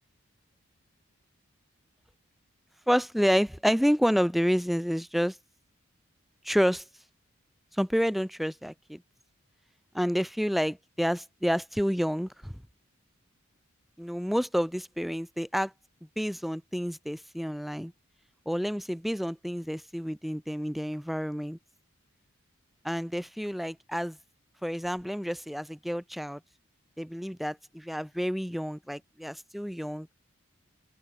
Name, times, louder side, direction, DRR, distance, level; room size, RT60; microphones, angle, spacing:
voice 1, 2.9-5.4 6.4-6.8 7.7-9.0 9.9-12.5 14.0-15.7 16.2-17.9 18.5-21.6 22.8-24.2 24.6-26.4 27.0-30.1, equal, ahead, 7.8 m, -29 dB
open air
head